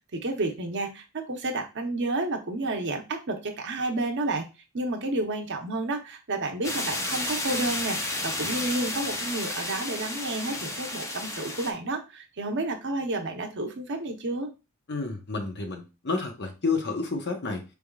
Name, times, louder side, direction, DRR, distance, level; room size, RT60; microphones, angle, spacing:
voice 1, 0.1-4.4 4.7-14.5, right 2 dB, 55° right, 0.8 m, -30 dB
sound 1, 6.6-11.7, left 1 dB, 15° left, 0.6 m, -32 dB
voice 2, 14.9-17.6, left 4 dB, 50° left, 0.9 m, -30 dB
4.8 x 3.6 x 2.3 m
head